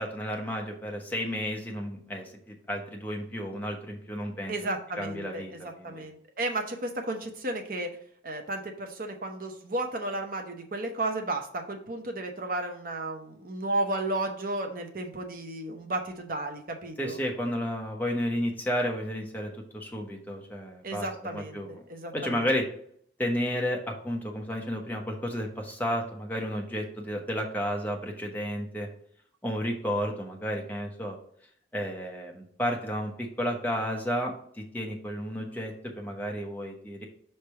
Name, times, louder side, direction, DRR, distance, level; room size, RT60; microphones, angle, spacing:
voice 1, 0.0-4.5 5.0-6.0 17.0-21.1 21.3-21.8 22.1-22.7 23.2-28.9 29.4-31.2 31.7-37.0, equal, 10° left, 0 dB, 0.9 m, -32 dB
voice 2, 4.5-8.0 8.2-17.2 20.8-21.6 21.9-22.4, right 2 dB, 50° right, 4 dB, 0.7 m, -33 dB
5.8 x 3.3 x 5.7 m, 0.63 s
head